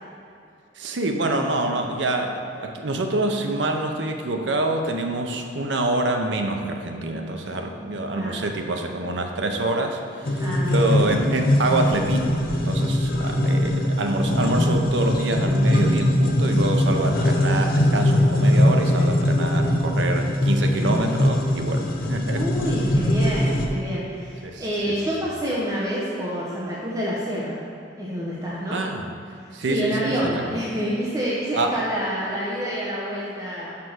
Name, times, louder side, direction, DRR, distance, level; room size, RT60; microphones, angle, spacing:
voice 1, 0.8-22.5 24.4-25.0 28.7-29.1 29.5-30.4 31.5-31.8, right 2 dB, 75° right, 4 dB, 0.7 m, -26 dB
voice 2, 8.1-8.5 10.4-11.0 22.3-27.6 27.9-28.8 29.7-33.8, equal, 20° right, -7 dB, 0.8 m, -28 dB
sound 1, 10.2-23.7, left 1 dB, 50° left, 0.7 m, -21 dB
5.9 x 4.6 x 6.3 m, 2.5 s
head